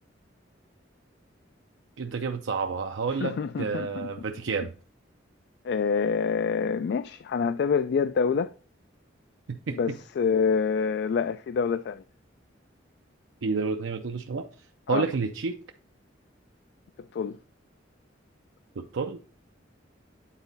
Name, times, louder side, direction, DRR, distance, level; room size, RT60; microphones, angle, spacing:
voice 1, 2.0-4.7 9.5-9.8 13.4-14.5 14.9-15.6 18.8-19.2, right 4 dB, 80° right, 0.5 m, -30 dB
voice 2, 3.2-4.1 5.6-8.5 9.8-12.0 14.9-15.1 17.1-17.4, left 6 dB, 60° left, 0.3 m, -26 dB
9.0 x 4.0 x 3.9 m
head